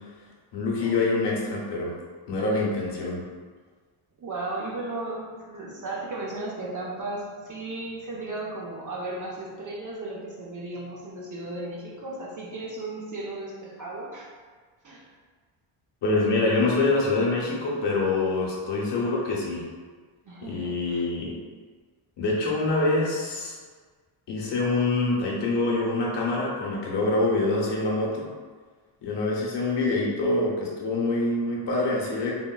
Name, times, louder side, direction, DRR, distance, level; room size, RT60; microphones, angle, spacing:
voice 1, 0.5-1.9 2.3-3.2 16.0-19.7 20.5-21.3 22.2-23.5 24.3-28.3 29.0-32.4, left 2 dB, 55° left, -3 dB, 0.7 m, -25 dB
voice 2, 4.2-14.3 14.8-15.1 20.2-21.0, right 2 dB, 40° right, -4 dB, 0.4 m, -35 dB
3.5 x 2.1 x 2.2 m, 1.5 s
wide cardioid pair, 150°, 49 cm